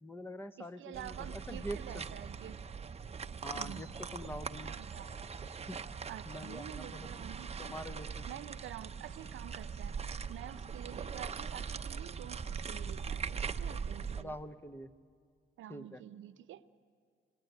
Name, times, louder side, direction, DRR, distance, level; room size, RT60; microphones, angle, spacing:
voice 1, 0.0-2.1 3.4-4.7 5.7-5.8 6.2-7.1 7.6-8.3 14.2-14.9 15.7-16.0, equal, 10° left, 10 dB, 1.1 m, -45 dB
voice 2, 0.6-2.6 3.5-3.9 4.3-4.4 4.6-5.2 6.1-7.5 8.3-14.4 15.6-16.6, right 12 dB, 75° right, 13 dB, 0.8 m, -48 dB
sound 1, 0.9-14.2, right 6 dB, 30° right, 0.8 m, -41 dB
29.5 x 20.5 x 9.4 m, 2.1 s
cardioid pair, 90°, 20 cm